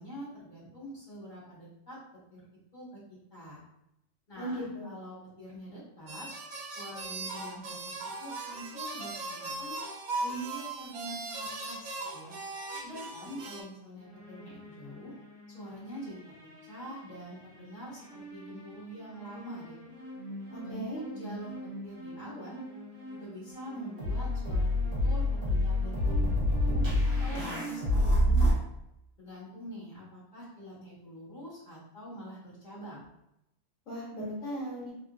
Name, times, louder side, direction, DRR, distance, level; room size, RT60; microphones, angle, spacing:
voice 1, 0.0-2.0 2.3-2.4 2.7-3.0 3.3-3.6 4.3-6.3 6.7-9.8 10.2-12.4 12.8-15.1 15.5-16.3 16.6-19.9 20.6-20.8 21.1-22.6 23.1-28.6 29.2-33.1, right 1 dB, 35° left, -9 dB, 1.3 m, -44 dB
voice 2, 4.4-5.0 20.5-21.0 33.9-34.9, equal, 70° left, -6 dB, 1.4 m, -37 dB
sound 1, 6.1-13.6, right 3 dB, 70° right, 0.4 m, -38 dB
sound 2, 14.0-15.6 16.0-17.3 18.0-28.5, left 1 dB, 50° right, 0.9 m, -31 dB
3.0 x 2.5 x 2.3 m, 0.84 s
omnidirectional pair, 1.4 m